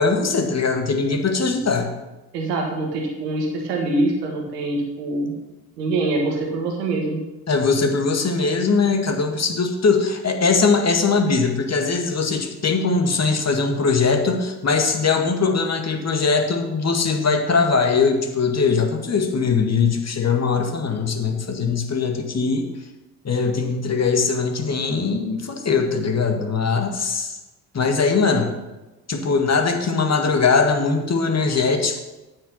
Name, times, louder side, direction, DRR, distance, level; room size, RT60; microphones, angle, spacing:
voice 1, 0.0-1.9 7.5-22.7 23.2-27.4 27.7-28.5 29.1-32.0, left 4 dB, 35° left, 4 dB, 2.1 m, -21 dB
voice 2, 2.3-5.3 5.8-7.2, right 2 dB, 85° right, 1 dB, 1.9 m, -24 dB
9.1 x 8.7 x 5.6 m, 1.1 s
hypercardioid pair, 55°, 47 cm